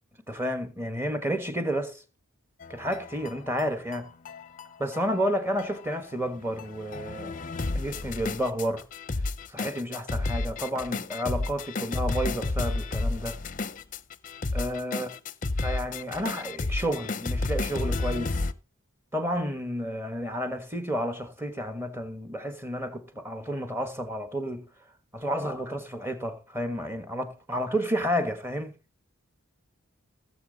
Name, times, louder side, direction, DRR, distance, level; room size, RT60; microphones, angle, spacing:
voice 1, 0.3-2.0 2.7-4.1 4.8-7.3 7.7-8.8 9.5-13.4 14.5-15.1 15.6-18.4 19.1-24.6 25.1-28.7, equal, 10° right, 1.3 m, -31 dB
sound 1, 2.6-18.5, left 2 dB, 35° left, 0.6 m, -32 dB
16.5 x 7.5 x 3.9 m
head